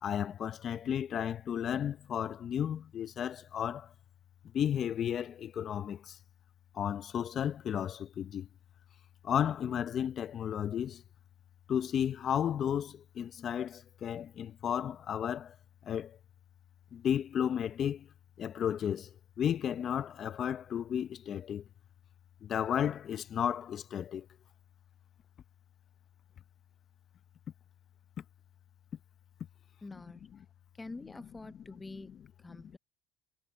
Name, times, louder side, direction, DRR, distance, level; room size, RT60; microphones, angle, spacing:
voice 1, 0.0-3.9 4.5-6.2 6.7-8.5 9.2-11.0 11.7-15.5 15.8-16.2 16.9-18.1 18.4-19.1 19.4-21.6 22.4-24.3 29.9-30.0 31.9-32.0 32.5-32.8, left 9 dB, 45° left, 0.8 m, -33 dB
voice 2, 29.8-30.3 30.8-32.1 32.4-32.8, left 3 dB, 15° left, 0.8 m, -46 dB
cardioid pair, 115°, 0 cm